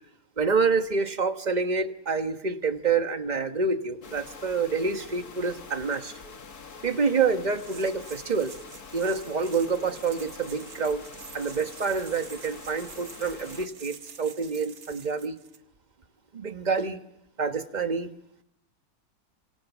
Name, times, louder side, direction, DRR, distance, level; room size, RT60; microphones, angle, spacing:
voice 1, 0.4-6.1 6.8-8.5 8.9-11.0 11.3-15.4 16.3-17.0 17.4-18.1, right 4 dB, 30° right, 8 dB, 1.2 m, -27 dB
sound 1, 4.0-13.7, left 4 dB, 85° left, 2.3 m, -45 dB
sound 2, 7.5-15.6, right 6 dB, 75° right, 1.9 m, -48 dB
29.5 x 26.5 x 7.2 m, 0.85 s
omnidirectional pair, 1.6 m